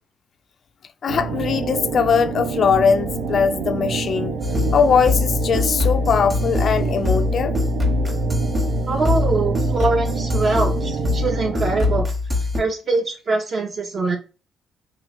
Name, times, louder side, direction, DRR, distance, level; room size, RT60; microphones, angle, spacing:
voice 1, 1.0-4.4 4.7-7.6, left 6 dB, 55° left, 0.3 m, -20 dB
sound 1, 1.1-12.0, right 5 dB, 90° right, 0.5 m, -27 dB
sound 2, 4.4-12.6, left 3 dB, 25° right, 0.9 m, -23 dB
voice 2, 8.9-12.1 12.6-14.2, right 3 dB, 45° right, 0.6 m, -23 dB
3.0 x 2.4 x 3.0 m
cardioid pair, 90°, 0 cm